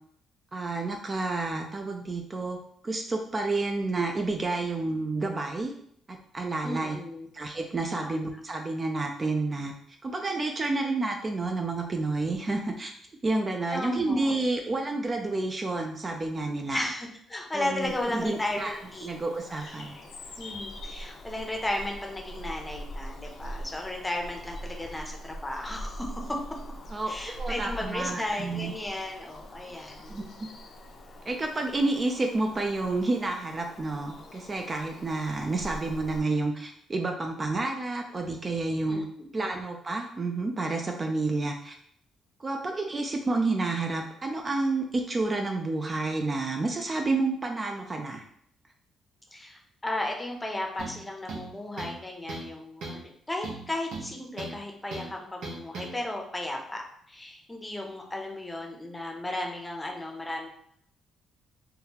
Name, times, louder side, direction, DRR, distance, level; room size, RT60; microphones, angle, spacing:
voice 1, 0.5-2.6 2.8-5.7 6.1-7.0 7.3-9.7 10.0-12.9 13.2-16.8 17.5-20.0 26.9-28.7 30.1-30.2 31.3-39.0 39.3-41.7 42.4-48.2, right 3 dB, 30° right, 3 dB, 0.4 m, -30 dB
voice 2, 6.6-7.3 8.0-8.3 13.7-14.3 16.7-19.1 19.5-19.7 20.4-26.4 27.1-30.3 38.9-39.0 49.3-56.8 57.1-60.5, left 1 dB, 15° left, 1 dB, 0.6 m, -34 dB
Bird vocalization bird call bird song, 17.8-36.2, equal, 60° left, 0.6 m, -43 dB
sound 1, 50.8-51.0 51.3-52.0 52.3-52.5 52.8-53.0 53.4-54.6 54.9-55.1 55.4-55.9, right 3 dB, 80° right, 0.9 m, -38 dB
3.6 x 2.3 x 2.8 m, 0.67 s
cardioid pair, 90°, 0 cm